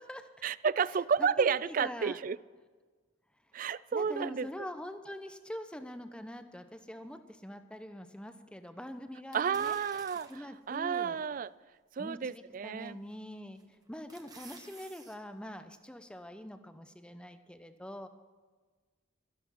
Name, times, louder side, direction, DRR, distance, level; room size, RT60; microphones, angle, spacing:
voice 1, 0.4-2.4 3.5-4.7 9.3-11.5 11.9-13.0, right 6 dB, 45° right, 19 dB, 0.3 m, -31 dB
voice 2, 1.8-2.2 3.9-9.8 10.3-11.2 12.0-13.6 13.9-18.1, equal, 5° left, 8 dB, 0.8 m, -44 dB
sound 1, 9.3-10.6 11.2-11.3 12.8-13.2 13.6-15.2 15.5-15.6, right 3 dB, 20° right, 1.4 m, -52 dB
13.5 x 12.0 x 5.7 m, 1.4 s
head